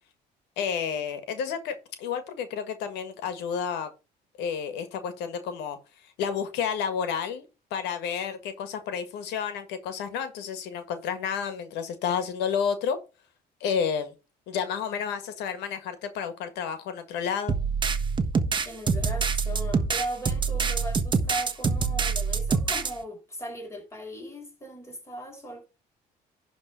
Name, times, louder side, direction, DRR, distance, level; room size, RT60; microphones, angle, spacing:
voice 1, 0.6-3.9 4.4-5.8 6.2-7.4 7.7-13.0 13.6-14.1 14.5-17.5, left 7 dB, 85° left, 1.7 m, -30 dB
sound 1, 17.5-22.9, right 5 dB, 30° right, 1.3 m, -26 dB
voice 2, 18.6-25.6, equal, 15° left, 4.6 m, -38 dB
11.0 x 3.7 x 6.7 m
cardioid pair, 110°, 17 cm